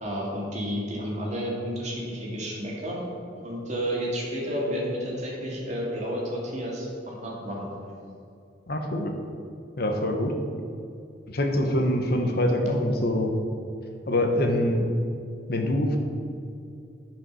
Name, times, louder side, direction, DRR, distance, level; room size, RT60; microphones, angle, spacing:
voice 1, 0.0-3.0 3.3-7.7, equal, 40° right, -3 dB, 2.2 m, -31 dB
voice 2, 8.7-9.1 9.8-10.3 11.3-13.3 14.1-14.9 15.5-16.0, left 1 dB, 55° left, 3 dB, 1.0 m, -24 dB
11.0 x 5.2 x 6.2 m, 2.5 s
head